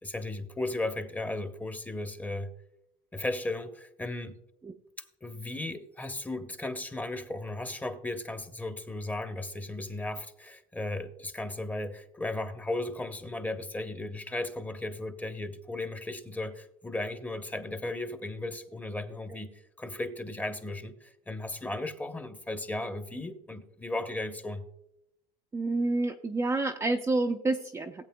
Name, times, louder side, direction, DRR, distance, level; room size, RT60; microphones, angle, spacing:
voice 1, 0.0-2.5 3.1-4.3 5.2-24.6, left 2 dB, 10° left, 0.9 m, -36 dB
voice 2, 25.5-28.1, right 2 dB, 15° right, 0.5 m, -29 dB
18.5 x 8.2 x 2.2 m
cardioid pair, 130°, 18 cm